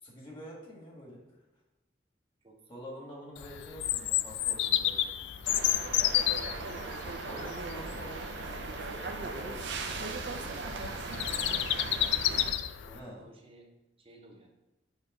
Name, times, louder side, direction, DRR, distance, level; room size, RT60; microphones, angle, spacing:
voice 1, 0.0-1.2 2.7-5.6 6.5-6.7 7.2-10.8 12.9-13.3, equal, 25° left, -3 dB, 1.6 m, -48 dB
Bird vocalization bird call bird song, 3.4-13.0, left 12 dB, 80° left, 0.3 m, -32 dB
sound 1, 5.4-12.5, right 3 dB, 80° right, 0.6 m, -38 dB
voice 2, 12.8-13.7 14.0-14.5, right 2 dB, 30° right, 1 dB, 0.9 m, -57 dB
6.5 x 3.2 x 5.0 m, 1.0 s
head